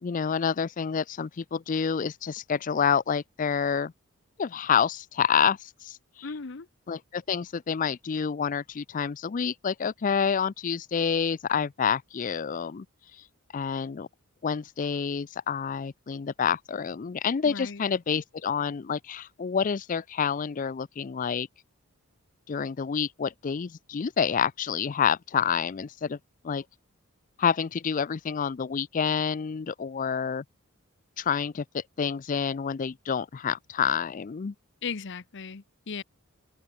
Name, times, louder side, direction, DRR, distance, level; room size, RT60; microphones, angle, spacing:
voice 1, 0.0-3.9 4.4-6.3 6.9-12.9 13.5-14.1 14.4-21.5 22.5-26.2 26.4-26.6 27.4-30.4 31.2-34.5, left 7 dB, 40° left, 0.4 m, -28 dB
voice 2, 6.2-6.7 17.5-17.8 34.8-36.0, left 5 dB, 55° left, 0.8 m, -37 dB
open air
head